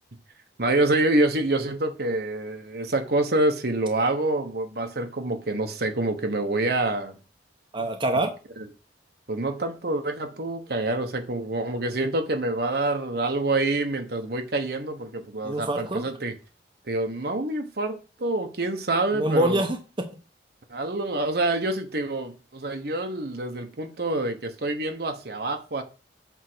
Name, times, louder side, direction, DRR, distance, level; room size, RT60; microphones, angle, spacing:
voice 1, 0.6-7.2 8.6-8.7 9.3-16.3 16.9-19.6 20.7-25.8, right 2 dB, 60° right, 1.2 m, -26 dB
voice 2, 7.7-8.3 15.4-16.1 19.1-20.1, right 1 dB, 30° right, 1.0 m, -25 dB
8.2 x 3.7 x 6.3 m
head